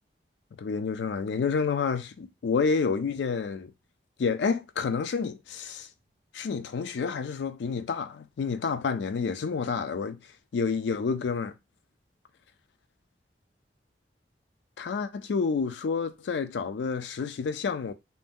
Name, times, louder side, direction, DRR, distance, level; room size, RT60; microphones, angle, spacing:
voice 1, 0.6-3.7 4.2-5.9 6.3-10.2 10.5-11.5 14.8-17.9, left 5 dB, 85° left, 0.4 m, -29 dB
2.6 x 2.2 x 3.4 m
head